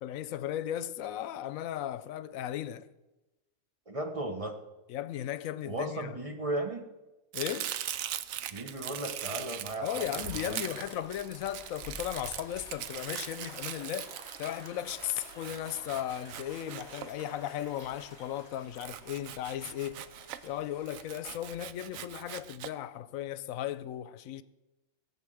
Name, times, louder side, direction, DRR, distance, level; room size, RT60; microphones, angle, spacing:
voice 1, 0.0-2.9 4.9-6.2 7.3-7.7 9.8-14.1 14.4-20.0 20.4-24.4, left 11 dB, 85° left, 1.0 m, -36 dB
voice 2, 3.9-4.5 5.6-6.9 8.5-10.3, right 1 dB, 30° right, 1.0 m, -35 dB
Domestic sounds home sounds, 7.3-17.6 18.8-20.5 20.9-22.7, right 11 dB, 85° right, 1.0 m, -41 dB
sound 1, 9.9-21.7, left 1 dB, 50° right, 4.6 m, -50 dB
17.0 x 5.9 x 7.7 m
omnidirectional pair, 1.4 m